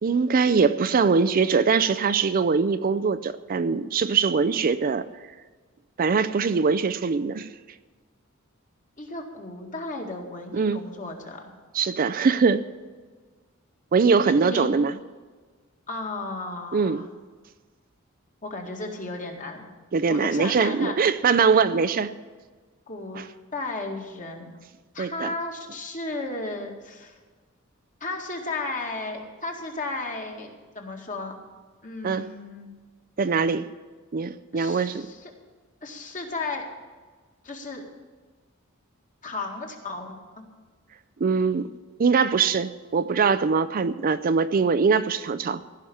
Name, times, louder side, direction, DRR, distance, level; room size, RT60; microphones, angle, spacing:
voice 1, 0.0-5.1 6.0-7.5 10.5-10.8 11.7-12.6 13.9-14.9 16.7-17.0 19.9-22.1 23.1-23.3 25.0-25.3 32.0-32.3 33.2-33.7 34.1-35.1 41.2-41.7 42.0-45.6, right 5 dB, 45° right, 13 dB, 0.4 m, -22 dB
voice 2, 9.0-11.5 14.2-14.7 15.9-17.0 18.4-19.7 20.1-21.0 21.7-21.8 22.9-23.2 23.5-24.5 24.9-27.2 28.0-31.4 31.8-32.7 34.5-35.3 35.8-36.6 37.4-37.8 39.2-40.4, left 3 dB, 40° left, 1 dB, 2.1 m, -34 dB
15.5 x 5.8 x 10.0 m, 1.4 s
head